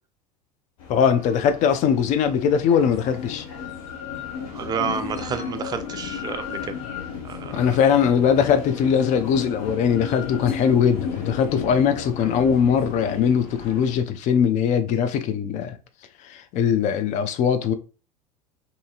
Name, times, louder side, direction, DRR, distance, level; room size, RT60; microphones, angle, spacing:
sound 1, 0.8-13.9, left 7 dB, 60° left, 0.8 m, -34 dB
voice 1, 0.9-3.4 7.5-15.8 16.2-17.7, left 7 dB, 40° left, 0.4 m, -21 dB
voice 2, 4.5-6.7 7.2-7.7, right 6 dB, 20° right, 0.4 m, -30 dB
2.7 x 2.7 x 2.4 m
figure-of-eight pair, 75°, 19 cm